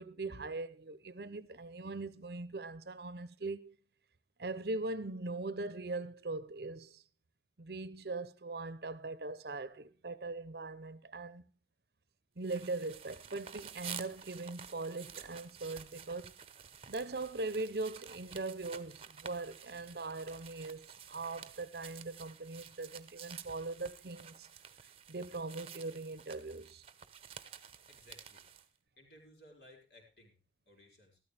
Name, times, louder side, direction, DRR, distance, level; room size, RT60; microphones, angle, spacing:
voice 1, 0.0-3.8 4.4-7.0 7.6-11.5 12.4-16.3 16.9-24.5 25.1-26.8, right 3 dB, 60° right, 0.8 m, -41 dB
sound 1, 12.4-28.7, right 8 dB, 35° right, 0.9 m, -51 dB
voice 2, 27.9-31.2, left 1 dB, 65° left, 4.9 m, -61 dB
14.0 x 13.0 x 3.4 m
head